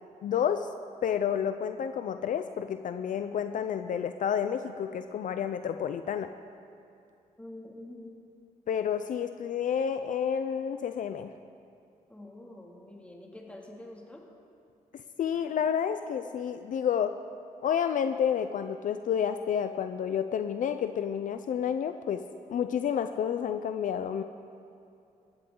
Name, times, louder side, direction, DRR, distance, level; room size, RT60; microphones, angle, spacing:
voice 1, 0.2-0.7 1.0-6.3 8.7-11.3 14.9-17.2 17.6-22.2 22.5-24.2, left 8 dB, 60° left, 9 dB, 0.6 m, -30 dB
voice 2, 7.4-8.2 12.1-14.3, left 1 dB, 10° left, -1 dB, 2.5 m, -46 dB
21.0 x 16.5 x 3.9 m, 2.6 s
cardioid pair, 120°, 15 cm